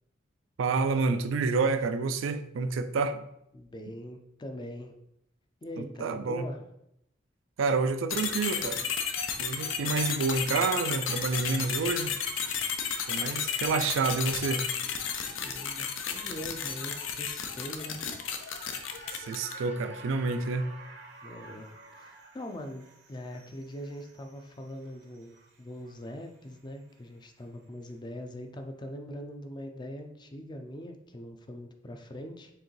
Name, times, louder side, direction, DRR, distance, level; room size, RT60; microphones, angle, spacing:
voice 1, 0.6-3.2 5.8-6.5 7.6-8.8 9.4-12.2 13.1-14.7 19.1-20.7, right 4 dB, 85° right, 10 dB, 0.4 m, -29 dB
voice 2, 3.5-5.0 5.6-6.6 15.2-18.0 21.2-21.7 22.0-32.5, equal, 25° left, 5 dB, 0.4 m, -42 dB
sound 1, 8.1-19.7, left 7 dB, 85° left, 0.5 m, -33 dB
sound 2, 15.2-27.1 27.4-27.5, right 3 dB, 60° right, 0.7 m, -52 dB
4.6 x 3.5 x 3.2 m, 0.79 s
head